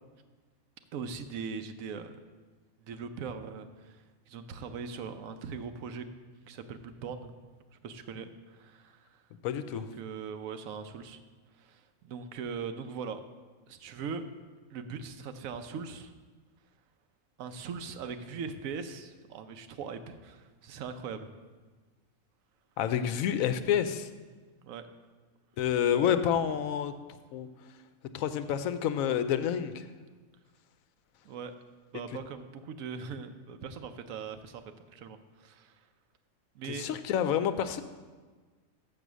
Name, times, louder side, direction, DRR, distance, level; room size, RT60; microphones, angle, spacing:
voice 1, 0.9-2.1 2.8-6.0 6.5-7.3 7.8-9.2 9.7-11.2 11.6-13.2 13.7-14.2 14.7-16.1 17.4-21.3 24.6-24.9 31.2-31.5 31.9-34.6 34.9-35.8 36.5-36.9, right 5 dB, 85° right, 9 dB, 1.1 m, -40 dB
voice 2, 9.4-9.9 22.8-24.1 25.6-26.9 27.3-27.5 28.1-29.9 36.7-37.8, left 9 dB, 85° left, 11 dB, 1.0 m, -28 dB
7.0 x 6.7 x 6.1 m, 1.4 s
omnidirectional pair, 1.4 m